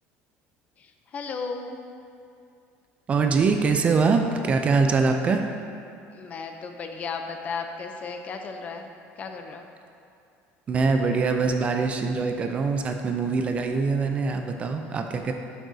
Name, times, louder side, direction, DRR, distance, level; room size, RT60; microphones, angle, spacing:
voice 1, 0.8-1.8 6.1-8.9 9.2-9.7, left 5 dB, 30° left, 5 dB, 0.6 m, -35 dB
voice 2, 3.1-5.4 10.7-15.3, right 4 dB, 25° right, 5 dB, 0.4 m, -23 dB
11.5 x 7.5 x 2.7 m, 2.5 s
cardioid pair, 165°, 5 cm